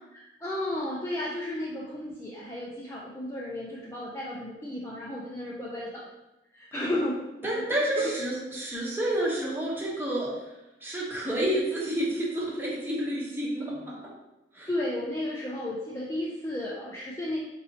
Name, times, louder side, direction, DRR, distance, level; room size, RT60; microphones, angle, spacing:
voice 1, 0.1-6.1 6.5-7.2 7.5-7.6 8.0-8.1 14.7-17.4, left 1 dB, 15° left, -5 dB, 0.4 m, -33 dB
voice 2, 7.4-10.3 10.8-14.0 14.5-14.7, right 1 dB, 10° right, -5 dB, 0.8 m, -29 dB
4.1 x 2.7 x 2.7 m, 0.95 s
head